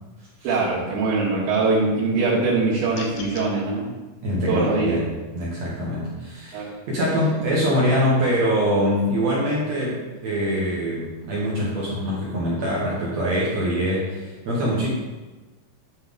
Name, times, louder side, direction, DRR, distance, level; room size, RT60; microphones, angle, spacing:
voice 1, 0.4-3.9 4.5-5.0 6.5-6.7, right 3 dB, 85° right, -9 dB, 3.7 m, -22 dB
sound 1, 2.9-3.5, left 5 dB, 75° left, 2.2 m, -38 dB
voice 2, 4.2-5.1 5.3-14.9, equal, 60° right, -6 dB, 1.8 m, -24 dB
9.7 x 4.4 x 3.7 m, 1.2 s
omnidirectional pair, 5.0 m